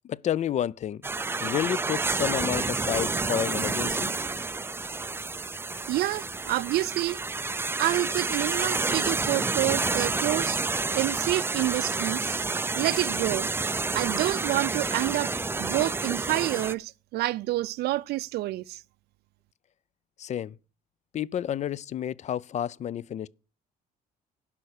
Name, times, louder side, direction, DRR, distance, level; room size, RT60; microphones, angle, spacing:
voice 1, 0.1-1.0 1.4-4.1 20.2-20.5 21.1-23.3, left 10 dB, 45° left, 0.4 m, -30 dB
sound 1, 1.0-16.7, right 3 dB, 15° right, 0.5 m, -29 dB
voice 2, 5.9-7.2 7.8-10.6 10.9-12.3 12.8-13.5 13.9-18.8, right 16 dB, 70° right, 0.5 m, -28 dB
11.5 x 5.6 x 6.6 m
cardioid pair, 110°, 17 cm